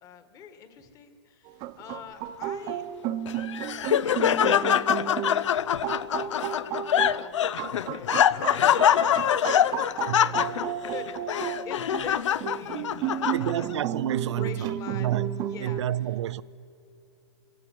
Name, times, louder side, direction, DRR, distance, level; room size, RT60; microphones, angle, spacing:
voice 1, 0.0-2.8 3.2-5.5 6.0-10.4 10.7-13.7 14.3-15.1 15.4-15.8, left 7 dB, 20° left, 1.7 m, -46 dB
sound 1, 1.5-15.8, right 10 dB, 25° right, 0.9 m, -33 dB
Laughter, 3.3-13.8, left 9 dB, 75° left, 0.7 m, -24 dB
voice 2, 10.1-10.5 13.3-16.4, right 12 dB, 70° right, 0.5 m, -30 dB
24.5 x 17.0 x 9.6 m
hypercardioid pair, 160°, 15 cm